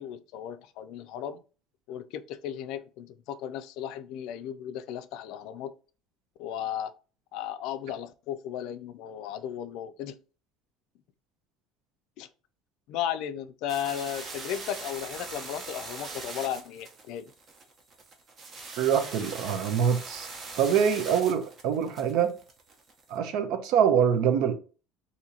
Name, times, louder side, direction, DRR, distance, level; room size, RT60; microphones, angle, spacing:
voice 1, 0.0-1.4 1.9-5.7 6.4-6.9 7.3-10.2 12.2-12.3 12.9-17.3, left 10 dB, 70° left, 0.3 m, -35 dB
sound 1, 13.7-23.1, right 3 dB, 35° right, 0.8 m, -42 dB
voice 2, 18.8-20.3 20.6-22.3 23.1-24.5, right 8 dB, 70° right, 0.6 m, -24 dB
2.8 x 2.7 x 4.0 m
cardioid pair, 135°, 0 cm